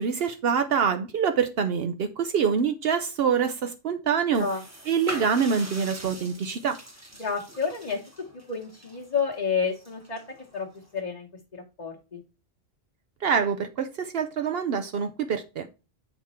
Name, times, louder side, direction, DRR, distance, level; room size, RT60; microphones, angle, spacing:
voice 1, 0.0-4.5 4.9-6.8 13.2-15.7, right 6 dB, 70° right, 0.9 m, -25 dB
sound 1, 4.3-11.0, equal, 15° right, 1.0 m, -43 dB
voice 2, 7.2-8.0 8.3-10.2 10.5-10.7 10.9-12.2, left 5 dB, 40° left, 1.2 m, -30 dB
8.1 x 3.6 x 4.2 m
omnidirectional pair, 1.1 m